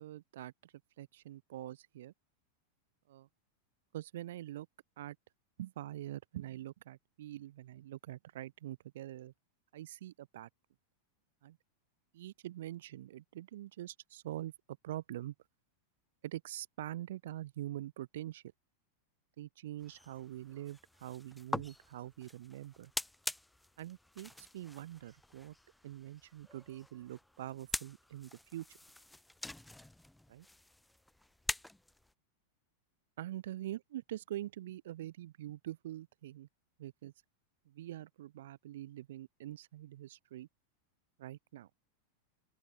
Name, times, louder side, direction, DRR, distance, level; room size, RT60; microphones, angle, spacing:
voice 1, 0.0-2.1 3.1-3.3 3.9-4.7 5.0-5.2 5.6-9.3 9.7-10.5 11.4-11.6 12.1-15.3 16.2-18.4 19.4-22.9 23.8-25.5 25.8-28.8 30.3-30.5 33.2-36.5 36.8-37.1 37.7-40.5 41.2-41.7, right 13 dB, 55° right, 0.6 m, -44 dB
sound 1, 19.8-32.1, left 1 dB, 5° left, 0.5 m, -45 dB
figure-of-eight pair, 90°, 0 cm